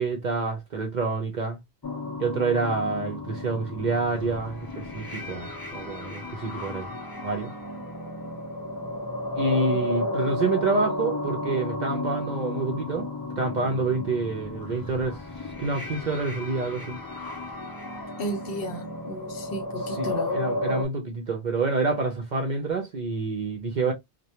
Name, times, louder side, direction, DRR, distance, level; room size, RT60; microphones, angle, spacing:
voice 1, 0.0-1.6 2.2-6.9 7.2-7.5 9.3-13.1 13.4-15.2 15.6-17.0 19.9-23.9, right 3 dB, 55° right, 0.6 m, -27 dB
sound 1, 1.8-20.8, left 2 dB, 40° left, 0.3 m, -33 dB
voice 2, 18.2-20.4, equal, 65° left, 0.8 m, -34 dB
2.2 x 2.2 x 2.7 m
omnidirectional pair, 1.1 m